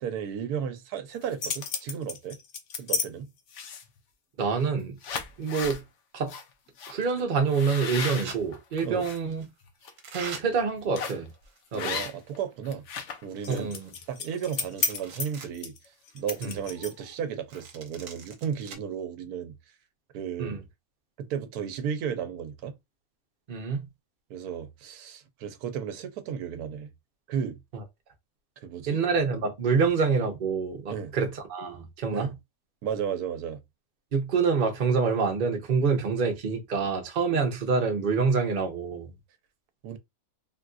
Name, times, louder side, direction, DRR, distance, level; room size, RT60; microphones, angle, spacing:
voice 1, 0.0-2.4 2.8-3.3 8.8-9.1 11.7-12.8 13.2-13.7 14.1-15.7 16.1-19.6 20.1-20.6 21.2-22.8 24.3-26.9 27.3-27.6 28.6-29.0 30.9-31.1 32.1-32.3 32.8-33.6 39.8-40.0, right 8 dB, 90° right, 1.1 m, -34 dB
sound 1, 1.1-3.1 3.5-4.0 4.6-4.7 5.0-5.8 6.3-6.4 6.8-6.9 7.5-9.2 9.6-9.9 10.9-11.3 11.8-12.4 12.6-17.1, left 5 dB, 60° left, 0.9 m, -33 dB
voice 2, 4.4-5.0 5.4-5.8 6.1-6.3 6.9-9.4 10.1-11.3 11.7-12.0 13.5-13.9 16.4-16.6 20.4-20.6 23.5-23.8 27.7-27.8 28.9-32.3 34.1-39.1, right 5 dB, 40° right, 0.8 m, -26 dB
sound 2, 6.9-7.2 8.0-8.4 9.3-9.5 10.0-10.4 11.3-12.0 12.3-12.4 13.0-13.1 13.4-14.4 14.7-15.5 16.0-16.1 17.5-18.8, right 4 dB, 65° right, 1.1 m, -42 dB
3.6 x 2.5 x 2.4 m
omnidirectional pair, 1.6 m